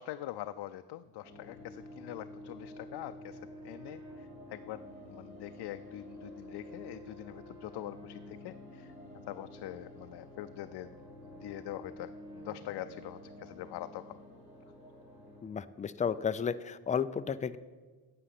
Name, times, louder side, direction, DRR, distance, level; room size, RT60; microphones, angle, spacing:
voice 1, 0.0-8.9 9.3-11.0 11.3-14.2, left 13 dB, 85° left, 9 dB, 0.5 m, -44 dB
sound 1, 1.2-15.4, left 1 dB, 20° right, 4.3 m, -49 dB
voice 2, 15.4-17.6, left 7 dB, 20° left, 12 dB, 0.3 m, -33 dB
9.7 x 7.7 x 8.2 m, 1.4 s
cardioid pair, 140°, 39 cm